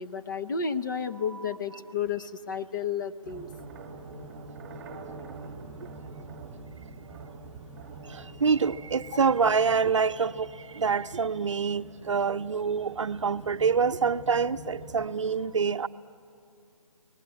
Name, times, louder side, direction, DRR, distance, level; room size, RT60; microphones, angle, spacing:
voice 1, 0.0-3.5 9.1-9.2, left 6 dB, 30° left, 0.7 m, -32 dB
sound 1, 3.2-15.1, right 3 dB, 10° right, 1.9 m, -45 dB
voice 2, 8.1-15.9, right 5 dB, 55° right, 0.7 m, -26 dB
29.5 x 19.5 x 9.8 m
figure-of-eight pair, 160°, 19 cm